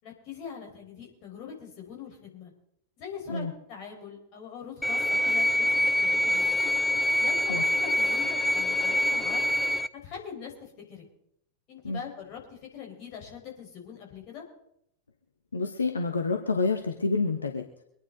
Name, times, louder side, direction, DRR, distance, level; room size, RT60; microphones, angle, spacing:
voice 1, 0.0-2.5 3.0-6.6 7.2-9.5 9.9-11.0 11.7-14.4, left 7 dB, 40° left, 0 dB, 5.0 m, -42 dB
sound 1, 4.8-9.9, left 1 dB, ahead, 0.6 m, -25 dB
voice 2, 15.5-17.6, left 4 dB, 75° left, 4 dB, 1.2 m, -28 dB
24.0 x 10.0 x 4.0 m, 0.74 s
figure-of-eight pair, 90°, 0 cm